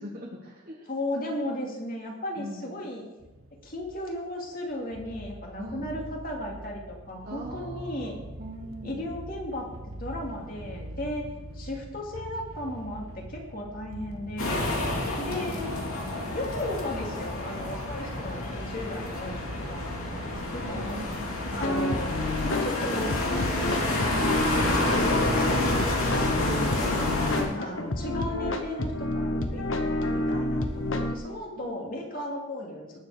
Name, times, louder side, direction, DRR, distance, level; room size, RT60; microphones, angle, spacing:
voice 1, 0.0-0.9 2.4-2.7 5.6-5.9 7.2-8.1 8.4-9.1 11.3-11.4 14.7-15.8 19.0-19.2 20.6-21.8 27.3-27.7 31.6-31.8, equal, 40° right, -1 dB, 1.4 m, -41 dB
voice 2, 0.9-3.0 3.6-8.2 8.8-9.7 10.0-11.2 11.5-14.7 15.2-15.8 16.3-21.0 21.5-25.8 26.2-26.9 27.6-32.8, left 1 dB, 40° left, -1 dB, 2.5 m, -36 dB
sound 1, 3.2-20.6, right 1 dB, 80° right, 1.1 m, -44 dB
sound 2, 14.4-27.4, left 2 dB, 85° left, 3.1 m, -29 dB
sound 3, 21.6-31.2, left 1 dB, 65° left, 1.1 m, -29 dB
19.5 x 7.4 x 5.0 m, 1.1 s
head